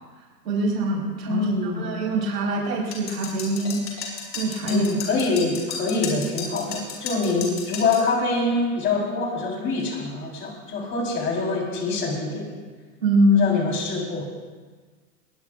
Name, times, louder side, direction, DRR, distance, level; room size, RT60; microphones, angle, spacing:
voice 1, 0.4-3.8 4.3-4.9 13.0-13.5, right 1 dB, 80° right, -2 dB, 4.8 m, -23 dB
voice 2, 1.3-1.8 4.6-12.5 13.3-14.2, left 3 dB, 25° left, -1 dB, 4.3 m, -25 dB
sound 1, 2.9-8.1, left 5 dB, 80° left, 6.4 m, -33 dB
21.5 x 20.5 x 2.5 m, 1.4 s
hypercardioid pair, 140°, 48 cm